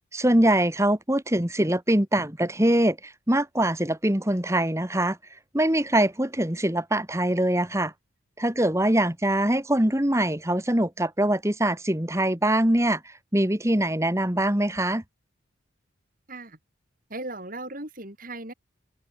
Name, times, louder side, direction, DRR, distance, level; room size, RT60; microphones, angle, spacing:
voice 1, 0.1-3.0 3.3-5.2 5.5-7.9 8.4-13.0 13.3-15.0, right 1 dB, 15° right, 1.8 m, -23 dB
voice 2, 16.3-16.6 17.1-18.5, right 2 dB, 45° right, 5.7 m, -37 dB
head